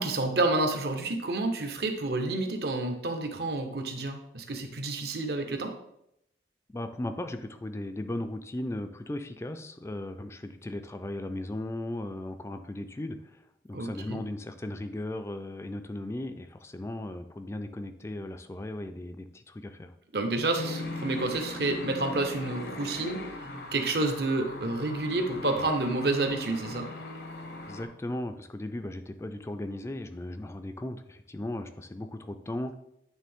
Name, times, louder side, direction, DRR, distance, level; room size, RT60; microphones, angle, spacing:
voice 1, 0.0-5.7 13.7-14.2 20.1-23.2 23.7-26.9, right 2 dB, 70° right, 5 dB, 0.8 m, -29 dB
voice 2, 6.7-13.2 13.7-19.9 27.7-32.8, left 1 dB, 15° left, 8 dB, 0.3 m, -37 dB
sound 1, 20.5-27.9, left 1 dB, 70° left, 0.8 m, -39 dB
9.1 x 3.4 x 3.5 m, 0.79 s
head